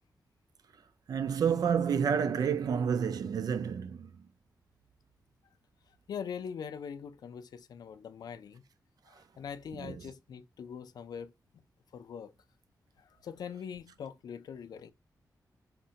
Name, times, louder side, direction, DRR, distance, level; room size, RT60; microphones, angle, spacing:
voice 1, 1.1-4.3 9.1-9.2 9.7-10.0, right 7 dB, 70° right, 0.4 m, -30 dB
voice 2, 6.1-8.6 9.1-11.3 11.9-12.3 13.0-14.9, left 7 dB, 75° left, 0.3 m, -42 dB
3.8 x 2.1 x 2.7 m
wide cardioid pair, 120°, 7 cm